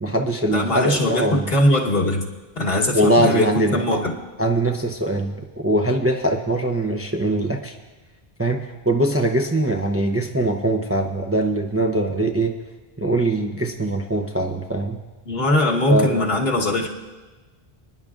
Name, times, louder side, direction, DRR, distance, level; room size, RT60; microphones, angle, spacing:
voice 1, 0.0-1.5 2.9-4.0 4.4-7.7 8.4-12.6 13.0-15.0 15.9-16.2, right 1 dB, 15° right, 2 dB, 0.6 m, -22 dB
voice 2, 0.5-2.3 2.6-4.1 15.3-16.9, left 1 dB, 70° left, -1 dB, 1.6 m, -20 dB
26.0 x 10.5 x 2.5 m, 1.2 s
omnidirectional pair, 1.0 m